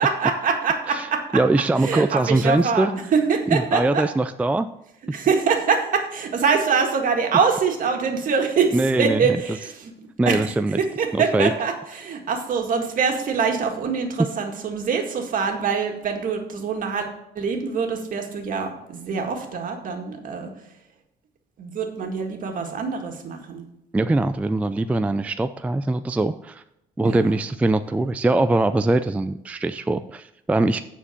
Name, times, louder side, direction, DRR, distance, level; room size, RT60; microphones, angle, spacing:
voice 1, 0.0-1.2 1.8-4.0 5.1-9.9 10.3-10.4 10.8-17.1 17.4-20.5 21.6-23.6 27.0-27.3, right 5 dB, 55° right, 3 dB, 1.8 m, -24 dB
voice 2, 1.3-2.9 3.5-4.7 5.1-5.2 8.7-9.4 10.2-10.8 11.1-11.5 23.9-26.6 27.0-30.8, right 2 dB, 10° right, 10 dB, 0.3 m, -22 dB
9.5 x 4.6 x 7.2 m, 0.81 s
cardioid pair, 110°, 17 cm